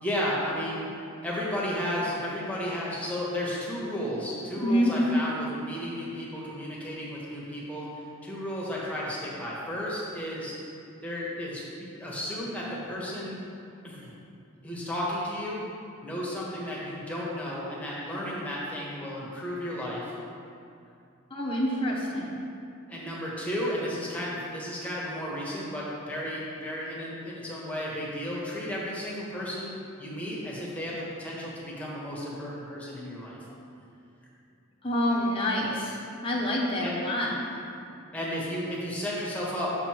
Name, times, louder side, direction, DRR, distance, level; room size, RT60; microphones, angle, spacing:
voice 1, 0.0-0.9 1.2-10.5 11.0-13.4 13.8-14.1 14.6-15.6 16.0-20.1 22.9-33.4 36.8-37.0 38.1-39.7, equal, 5° left, -6 dB, 1.4 m, -33 dB
voice 2, 4.6-4.9 21.3-22.4 34.8-37.3, equal, 25° left, -5 dB, 1.1 m, -27 dB
7.0 x 6.6 x 4.5 m, 2.5 s
head